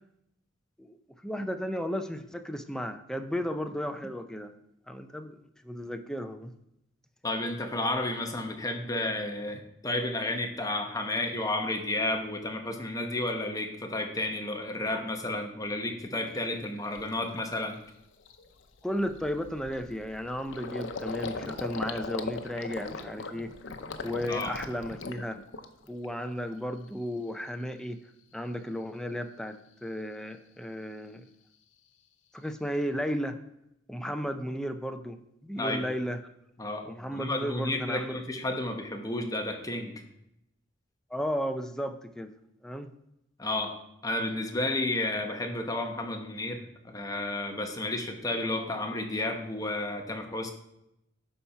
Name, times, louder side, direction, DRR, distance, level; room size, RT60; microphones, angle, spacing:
voice 1, 1.2-4.5 4.9-5.4 5.6-6.5 18.8-23.5 24.0-25.4 25.8-28.0 28.3-31.2 32.3-33.4 33.9-36.2 36.9-38.2 41.1-42.3 42.6-42.9, equal, 5° left, 7 dB, 0.5 m, -34 dB
voice 2, 7.2-17.8 24.3-24.5 35.6-35.8 36.6-36.8 37.1-40.0 43.4-50.5, left 2 dB, 20° left, 4 dB, 1.0 m, -32 dB
Gurgling, 16.4-16.5 16.9-17.2 17.6-17.7 18.0-26.0 26.4-27.0, left 4 dB, 90° left, 0.7 m, -39 dB
10.0 x 4.3 x 5.7 m, 0.82 s
head